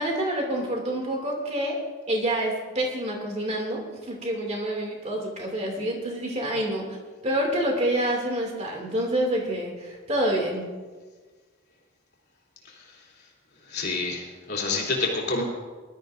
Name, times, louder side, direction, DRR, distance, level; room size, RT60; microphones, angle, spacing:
voice 1, 0.0-1.8 2.1-3.8 4.1-6.9 7.2-10.6, right 1 dB, 30° right, 0 dB, 2.7 m, -27 dB
voice 2, 13.7-15.4, left 3 dB, 50° left, -3 dB, 3.1 m, -28 dB
19.5 x 13.0 x 2.7 m, 1.4 s
head